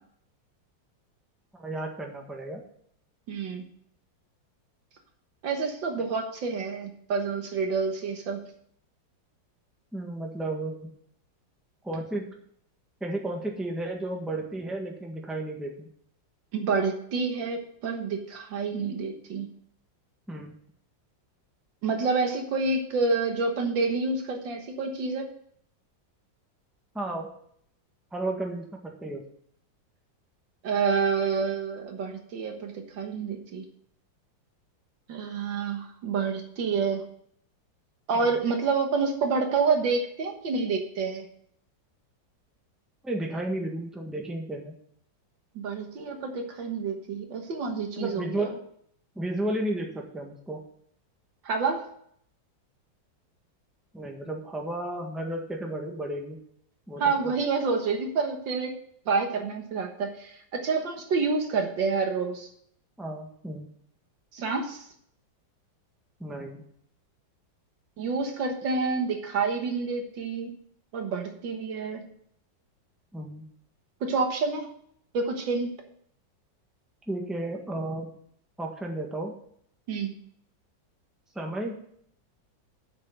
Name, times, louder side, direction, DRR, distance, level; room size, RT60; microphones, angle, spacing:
voice 1, 1.5-2.6 9.9-10.9 11.8-12.3 13.0-15.9 20.3-20.6 26.9-27.3 28.1-29.2 43.0-44.7 48.0-48.5 49.1-50.6 53.9-56.4 56.9-57.2 63.0-63.7 66.2-66.6 73.1-73.5 77.1-78.1 78.6-79.3 81.3-81.8, right 1 dB, ahead, 1 dB, 1.4 m, -33 dB
voice 2, 3.3-3.7 5.4-8.4 16.5-19.5 21.8-25.3 30.6-33.7 35.1-37.0 38.1-41.3 45.6-48.5 51.4-51.8 57.0-58.7 59.1-62.5 64.3-64.9 68.0-70.6 70.9-72.1 74.0-74.7 75.1-75.7 79.9-80.1, right 4 dB, 75° right, 4 dB, 2.0 m, -28 dB
7.6 x 6.4 x 7.8 m, 0.65 s
omnidirectional pair, 2.1 m